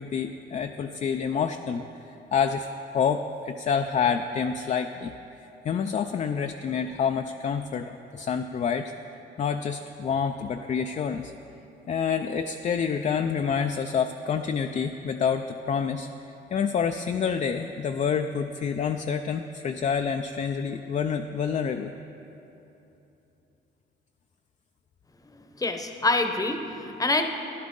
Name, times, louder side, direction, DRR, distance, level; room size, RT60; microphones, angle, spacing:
voice 1, 0.0-5.1 5.6-8.9 9.4-11.3 11.9-16.1 16.5-21.9, left 6 dB, 40° left, 6 dB, 0.4 m, -28 dB
voice 2, 25.2-27.2, left 2 dB, 15° left, 6 dB, 0.8 m, -26 dB
12.5 x 11.0 x 3.7 m, 3.0 s
cardioid pair, 90°, 20 cm